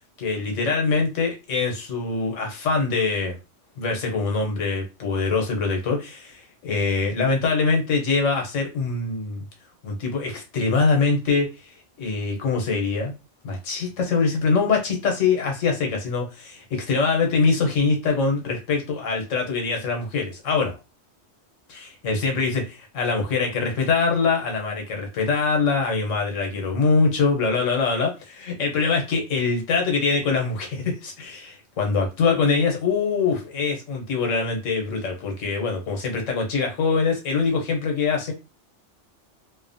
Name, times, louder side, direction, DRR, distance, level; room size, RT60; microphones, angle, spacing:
voice 1, 0.2-3.4 3.8-9.4 9.8-11.7 12.0-13.1 13.4-20.7 21.7-22.6 22.9-38.3, left 4 dB, 85° left, 2 dB, 1.2 m, -23 dB
2.8 x 2.1 x 2.6 m, 0.28 s
omnidirectional pair, 1.3 m